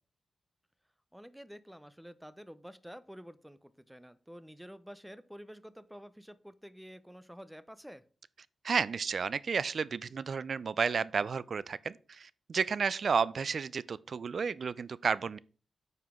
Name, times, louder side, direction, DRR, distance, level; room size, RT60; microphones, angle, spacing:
voice 1, 1.1-8.0, equal, 5° right, 0.5 m, -49 dB
voice 2, 8.6-15.4, right 5 dB, 55° right, 0.4 m, -32 dB
9.4 x 5.8 x 3.6 m
wide cardioid pair, 125°, 0 cm